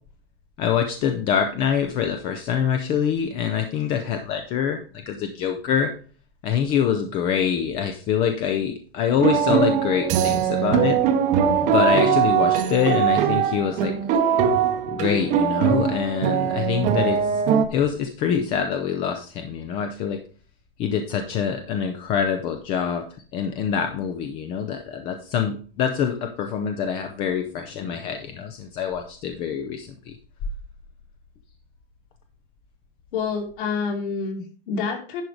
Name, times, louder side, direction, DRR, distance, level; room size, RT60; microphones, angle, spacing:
voice 1, 0.6-5.9 6.4-11.0 11.6-14.0 14.9-17.4 17.7-20.2 20.8-23.1 23.3-30.2, left 8 dB, 20° left, 6 dB, 0.4 m, -25 dB
sound 1, 9.2-17.7, right 8 dB, 25° right, 0.8 m, -21 dB
voice 2, 33.1-35.2, left 5 dB, 55° left, 1 dB, 2.7 m, -28 dB
10.5 x 4.6 x 4.9 m, 0.41 s
supercardioid pair, 160°, 31 cm